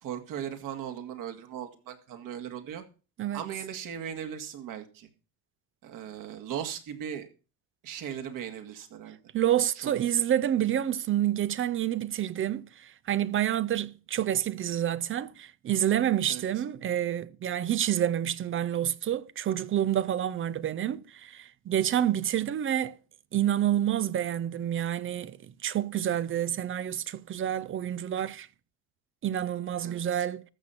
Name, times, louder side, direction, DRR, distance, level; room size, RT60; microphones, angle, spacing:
voice 1, 0.0-2.8 3.3-5.1 5.8-7.3 7.8-9.2 9.8-9.9 16.3-16.4 29.8-30.3, right 9 dB, 60° right, 2.4 m, -38 dB
voice 2, 9.3-23.0 23.3-25.4 25.6-28.5 29.2-30.4, right 11 dB, 35° right, 0.6 m, -28 dB
14.5 x 6.3 x 5.8 m
supercardioid pair, 110°, 36 cm